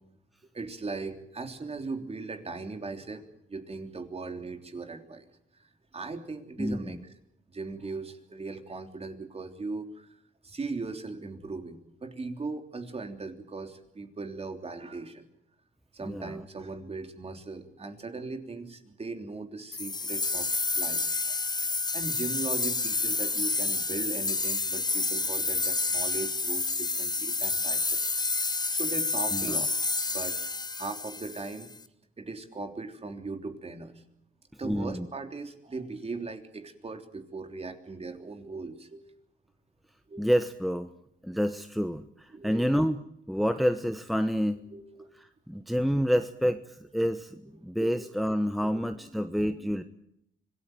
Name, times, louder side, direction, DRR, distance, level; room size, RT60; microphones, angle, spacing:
voice 1, 0.5-5.2 5.9-7.0 7.5-10.1 10.4-15.2 15.9-20.5 20.7-28.2 28.7-29.8 30.1-31.7 32.2-33.9 34.6-39.0 40.1-40.2 42.3-42.7 44.7-45.1 47.8-48.1, right 3 dB, 30° right, 6 dB, 3.4 m, -38 dB
voice 2, 6.6-7.0 16.0-16.4 29.3-29.6 34.6-35.1 40.2-40.9 41.2-43.0 43.3-44.6 45.2-49.8, equal, ahead, 9 dB, 1.1 m, -28 dB
sound 1, 19.7-31.7, left 3 dB, 20° left, 1.2 m, -29 dB
25.5 x 18.5 x 9.2 m, 0.77 s
cardioid pair, 90°, 20 cm